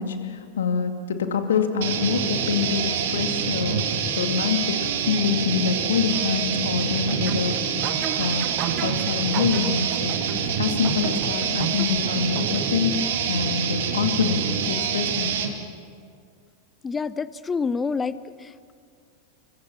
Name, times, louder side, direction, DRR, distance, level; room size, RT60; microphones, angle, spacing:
voice 1, 0.0-3.8 4.1-7.8 8.2-8.5 8.8-10.2 10.6-15.3, left 6 dB, 65° left, 6 dB, 2.4 m, -25 dB
sound 1, 1.8-15.5, right 7 dB, 55° right, 2.5 m, -26 dB
sound 2, 7.1-13.0, right 11 dB, 40° right, 1.2 m, -34 dB
voice 2, 16.8-18.7, left 5 dB, 15° left, 16 dB, 0.8 m, -28 dB
29.5 x 23.5 x 6.0 m, 2.2 s
figure-of-eight pair, 90°, 0 cm